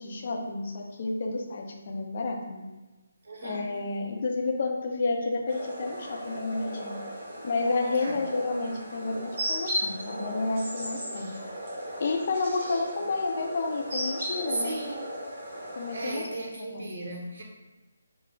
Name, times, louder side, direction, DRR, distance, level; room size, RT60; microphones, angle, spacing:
voice 1, 0.0-2.6 3.4-7.0 7.4-11.3 12.0-14.7 15.8-16.2 16.7-16.9, left 3 dB, 45° left, 1 dB, 0.6 m, -30 dB
voice 2, 3.2-3.7 7.9-8.2 14.5-15.1 15.9-17.4, right 2 dB, 55° right, -1 dB, 0.8 m, -35 dB
sound 1, 5.5-16.2, equal, 40° right, 1.3 m, -36 dB
4.8 x 2.0 x 2.7 m, 1.1 s
figure-of-eight pair, 150°, 0 cm